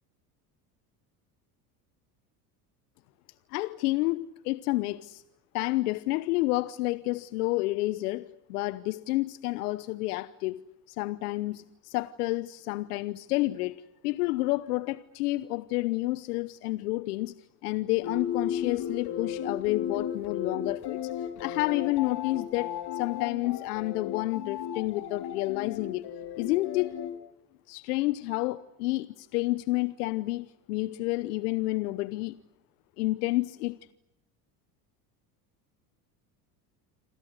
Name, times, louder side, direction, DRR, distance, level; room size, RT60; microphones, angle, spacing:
voice 1, 3.5-5.2 5.5-10.6 10.9-17.3 17.6-26.1 26.4-27.0 27.7-32.4 33.0-33.8, left 19 dB, 80° left, 1.0 m, -30 dB
sound 1, 18.0-27.1, left 9 dB, 55° left, 4.4 m, -35 dB
28.0 x 25.5 x 8.1 m
hypercardioid pair, 85°, 46 cm